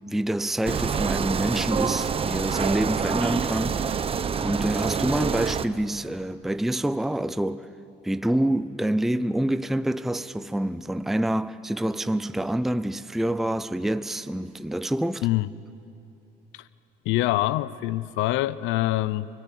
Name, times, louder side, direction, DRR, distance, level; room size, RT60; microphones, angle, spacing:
voice 1, 0.1-3.9 4.4-7.7 8.0-15.3, right 1 dB, ahead, 0.5 m, -27 dB
sound 1, 0.6-5.7, right 6 dB, 30° right, 0.8 m, -26 dB
voice 2, 17.0-19.3, left 17 dB, 80° left, 0.6 m, -25 dB
26.0 x 19.5 x 8.3 m
cardioid pair, 105°, 19 cm